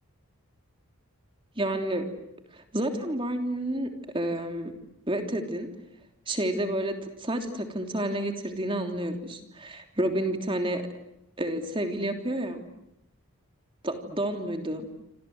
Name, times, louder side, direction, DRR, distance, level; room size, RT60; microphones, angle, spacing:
voice 1, 1.6-2.0 2.5-3.9 4.1-4.7 5.1-5.7 6.3-10.8 11.4-12.6 13.8-14.9, right 1 dB, 25° right, 5 dB, 3.2 m, -30 dB
27.5 x 27.5 x 8.0 m, 0.85 s
head